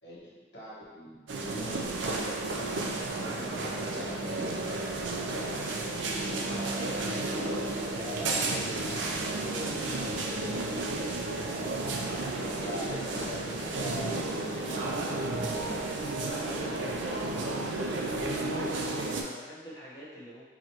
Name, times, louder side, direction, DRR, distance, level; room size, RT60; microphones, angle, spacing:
voice 1, 0.0-4.9 5.3-5.8 6.7-10.9 12.2-15.8 16.2-17.4, equal, 70° left, -8 dB, 1.4 m, -43 dB
sound 1, 1.3-19.2, right 2 dB, 90° right, 0.5 m, -32 dB
voice 2, 12.4-13.4 13.8-13.9 14.3-15.2 18.6-20.5, equal, 20° left, -7 dB, 1.0 m, -46 dB
4.7 x 3.1 x 2.9 m, 1.4 s
head